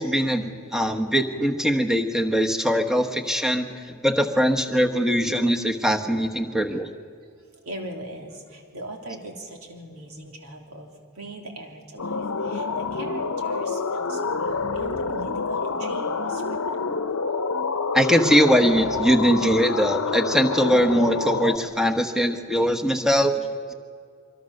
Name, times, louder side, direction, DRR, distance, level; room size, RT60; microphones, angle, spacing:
voice 1, 0.0-3.7 4.0-6.9 17.9-23.5, equal, ahead, 4 dB, 1.2 m, -21 dB
voice 2, 7.6-16.6, right 1 dB, 75° right, 2 dB, 3.3 m, -40 dB
sound 1, 12.0-21.6, left 4 dB, 85° left, 1.0 m, -27 dB
24.5 x 23.5 x 6.6 m, 2.3 s
head